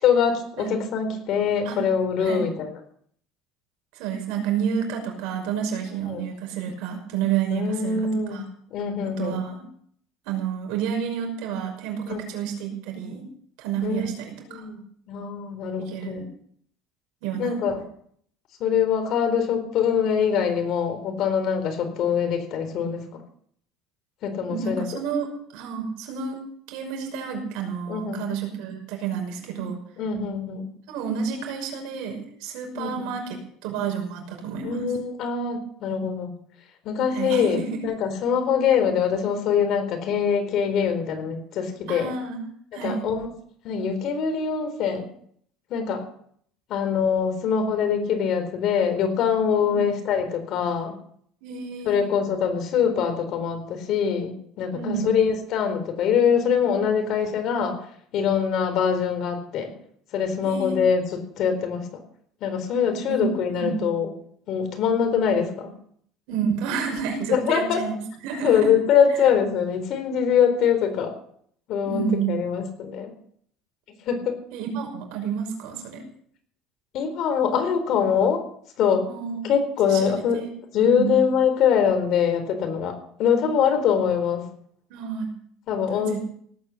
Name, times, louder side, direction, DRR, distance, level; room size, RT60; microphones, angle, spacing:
voice 1, 0.0-2.7 6.1-6.3 7.5-8.4 8.7-9.4 12.1-12.2 13.8-14.1 14.5-16.3 17.4-17.8 18.6-23.0 24.2-24.8 27.9-28.2 30.0-30.7 32.8-33.1 34.6-36.3 36.8-42.1 42.8-43.3 43.6-45.1 45.7-46.0 46.7-50.9 51.8-57.8 58.1-59.7 60.1-61.8 62.4-64.1 64.5-65.7 67.3-67.8 68.4-71.1 71.7-73.1 74.1-74.4 76.9-78.4 78.8-79.1 79.4-80.4 80.7-84.5 85.7-86.2, left 7 dB, 50° left, 6 dB, 4.2 m, -23 dB
voice 2, 4.0-8.4 9.0-9.6 10.3-13.2 13.6-14.6 15.9-16.2 17.2-17.6 24.5-26.4 26.7-29.8 30.9-34.9 35.9-36.0 37.1-37.8 41.9-42.4 42.7-43.0 49.6-49.8 51.4-52.0 54.7-55.1 60.4-60.8 63.1-63.3 63.5-63.9 66.3-68.7 71.9-72.3 74.5-76.0 79.1-79.4 79.9-80.5 81.0-81.2 84.9-85.3 85.9-86.2, right 7 dB, 75° right, 3 dB, 5.6 m, -30 dB
18.0 x 9.5 x 7.4 m, 0.63 s
cardioid pair, 155°, 0 cm